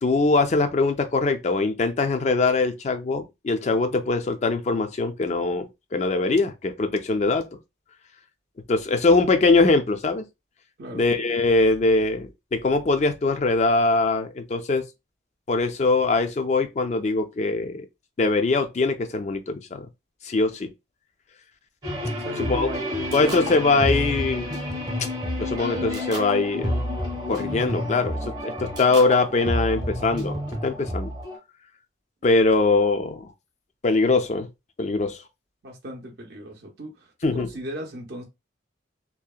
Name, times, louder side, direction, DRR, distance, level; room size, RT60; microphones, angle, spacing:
voice 1, 0.0-7.4 8.7-10.2 10.9-14.9 15.5-17.9 18.2-19.9 20.2-20.7 22.4-22.7 23.1-24.5 25.4-26.8 27.3-31.1 32.2-33.3 33.8-34.5 34.8-35.2 37.2-37.5, left 3 dB, 35° left, 0.3 m, -22 dB
sound 1, 21.8-31.4, left 1 dB, 20° right, 0.7 m, -29 dB
voice 2, 22.2-23.6 35.6-38.2, equal, 55° right, 0.6 m, -37 dB
2.7 x 2.1 x 2.3 m
head